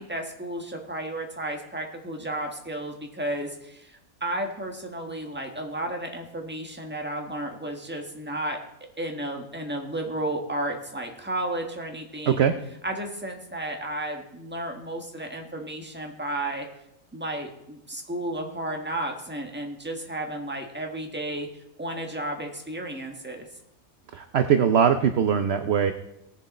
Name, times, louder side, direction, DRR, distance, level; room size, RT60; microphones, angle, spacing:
voice 1, 0.0-8.6 9.0-12.4 12.8-16.7 17.1-21.5 21.8-23.5, right 1 dB, 10° right, 2 dB, 1.4 m, -33 dB
voice 2, 24.1-25.9, right 8 dB, 55° right, 9 dB, 0.8 m, -21 dB
18.5 x 7.1 x 4.2 m, 0.84 s
omnidirectional pair, 1.5 m